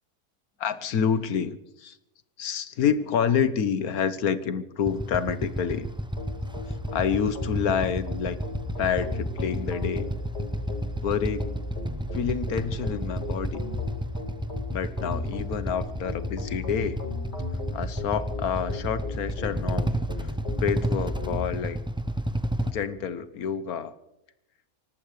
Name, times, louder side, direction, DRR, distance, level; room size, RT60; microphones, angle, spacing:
voice 1, 0.6-2.0 2.4-5.9 6.9-8.4 8.8-10.1 10.9-11.5 12.1-13.6 14.7-17.0 17.7-19.9 20.2-20.3 20.6-21.8 22.6-23.9, left 7 dB, 85° left, 13 dB, 1.5 m, -28 dB
Motorcycle / Idling, 4.8-22.7, right 1 dB, 5° right, 0.4 m, -32 dB
sound 1, 6.2-21.4, left 2 dB, 50° left, 4.1 m, -35 dB
24.0 x 18.5 x 3.3 m, 0.87 s
omnidirectional pair, 1.5 m